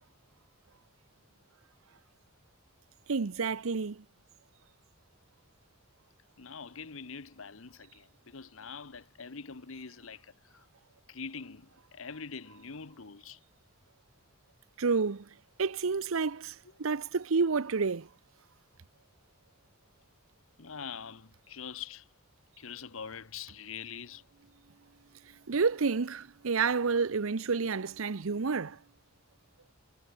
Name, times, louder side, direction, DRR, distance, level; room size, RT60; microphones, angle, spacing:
voice 1, 3.1-4.0 14.8-15.2 15.6-16.5 16.8-18.1 25.5-28.8, right 4 dB, 80° right, 0.7 m, -29 dB
voice 2, 6.4-10.6 11.1-13.4 20.6-22.0 22.6-24.2, left 6 dB, 75° left, 1.1 m, -44 dB
head